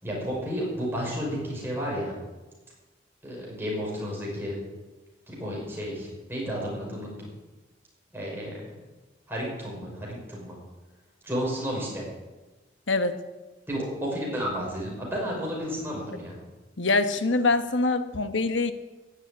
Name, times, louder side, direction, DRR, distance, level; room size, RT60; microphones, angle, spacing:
voice 1, 0.0-2.1 3.2-4.6 5.3-7.3 8.1-8.7 9.3-10.6 11.2-12.1 13.7-16.4, equal, 10° right, -4 dB, 5.5 m, -32 dB
voice 2, 12.9-13.2 16.8-18.7, left 3 dB, 70° left, 10 dB, 1.1 m, -24 dB
16.5 x 7.2 x 9.5 m, 1.2 s
head